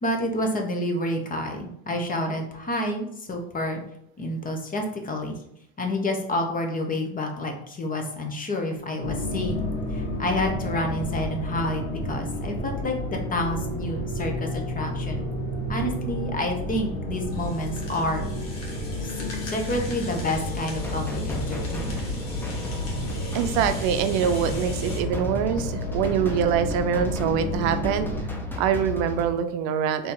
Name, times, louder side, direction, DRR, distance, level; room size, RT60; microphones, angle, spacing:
voice 1, 0.0-3.8 4.2-5.4 5.8-15.2 15.7-18.3 19.0-19.1 19.4-22.1 23.5-23.6, left 1 dB, 25° left, 3 dB, 0.9 m, -29 dB
sound 1, 9.0-28.2, left 1 dB, 70° left, 1.3 m, -31 dB
Rattle (instrument), 17.3-25.0, left 2 dB, 50° left, 1.8 m, -43 dB
sound 2, 20.8-29.2, left 1 dB, 5° left, 0.7 m, -34 dB
voice 2, 23.3-28.1 28.6-30.1, right 8 dB, 75° right, 9 dB, 0.6 m, -24 dB
4.1 x 2.9 x 3.8 m, 0.74 s
supercardioid pair, 105°, 33 cm